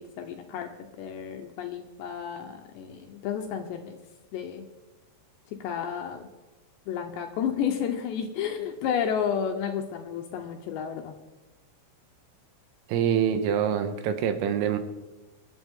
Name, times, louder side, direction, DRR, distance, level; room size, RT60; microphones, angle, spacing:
voice 1, 0.0-4.0 4.3-4.7 5.6-6.3 6.9-11.2, left 8 dB, 75° left, 4 dB, 2.7 m, -31 dB
voice 2, 12.9-14.8, right 8 dB, 90° right, 8 dB, 3.9 m, -25 dB
24.0 x 11.5 x 3.7 m, 1.1 s
omnidirectional pair, 5.9 m